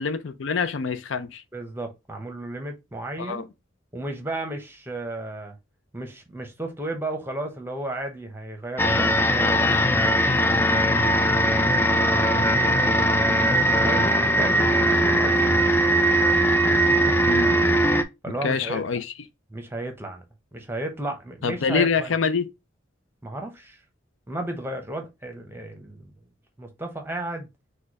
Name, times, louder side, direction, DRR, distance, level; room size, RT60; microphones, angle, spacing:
voice 1, 0.0-1.4 3.2-3.4 17.3-17.5 18.4-19.0 21.4-22.5, left 5 dB, 70° left, 0.5 m, -25 dB
voice 2, 1.5-3.5 3.9-5.5 5.9-10.8 11.7-15.7 17.1-17.2 18.2-18.8 19.5-20.2 20.5-22.2 23.2-23.8 24.3-26.1 26.6-27.5, right 2 dB, 10° right, 0.8 m, -34 dB
sound 1, 8.8-18.0, equal, 10° left, 0.4 m, -20 dB
4.4 x 2.3 x 4.6 m
head